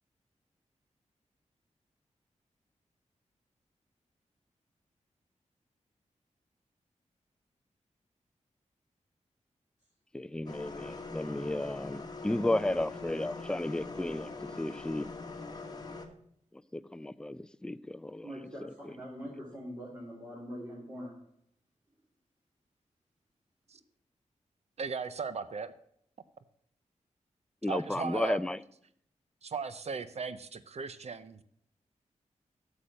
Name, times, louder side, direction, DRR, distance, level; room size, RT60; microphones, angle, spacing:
voice 1, 10.1-14.3 14.6-15.1 16.7-18.3 18.8-18.9 27.6-28.6, left 1 dB, 5° left, 0.4 m, -33 dB
sound 1, 10.5-16.1, left 3 dB, 30° left, 1.3 m, -42 dB
voice 2, 18.2-21.1, equal, 25° right, 3.0 m, -43 dB
voice 3, 24.8-25.7 27.7-28.4 29.4-31.4, right 5 dB, 60° right, 0.6 m, -37 dB
8.6 x 6.9 x 7.4 m
wide cardioid pair, 125°, 13 cm